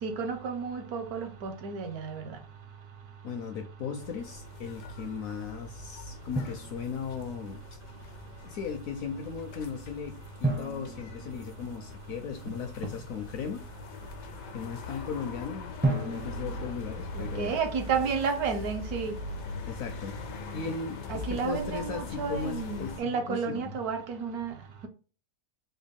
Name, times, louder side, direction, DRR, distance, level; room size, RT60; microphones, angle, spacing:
voice 1, 0.0-2.4 12.8-12.9 17.1-19.2 21.1-24.9, right 5 dB, 70° right, 1.1 m, -32 dB
voice 2, 3.2-7.6 8.4-13.6 14.5-17.6 19.7-20.2 20.5-23.8, left 6 dB, 70° left, 0.8 m, -37 dB
sound 1, 4.0-23.0, left 3 dB, 90° left, 1.3 m, -42 dB
Drum, 6.4-7.4 10.4-12.3 15.8-17.8, right 2 dB, 15° right, 0.3 m, -34 dB
4.0 x 2.2 x 3.4 m
omnidirectional pair, 1.8 m